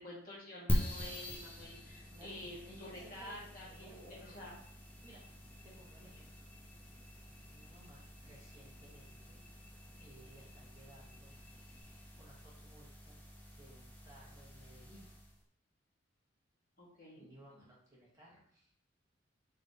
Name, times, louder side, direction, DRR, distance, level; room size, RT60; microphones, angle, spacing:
voice 1, 0.0-4.5 16.8-17.3, left 1 dB, 45° left, -5 dB, 1.3 m, -49 dB
sound 1, 0.7-15.4, equal, 10° left, 0.4 m, -44 dB
voice 2, 2.1-4.6 5.0-5.2 5.6-6.5 7.4-9.4 10.0-11.3 12.2-13.2 13.5-15.1 17.2-18.7, right 1 dB, 15° right, -7 dB, 1.1 m, -59 dB
3.9 x 3.4 x 2.7 m, 0.64 s
head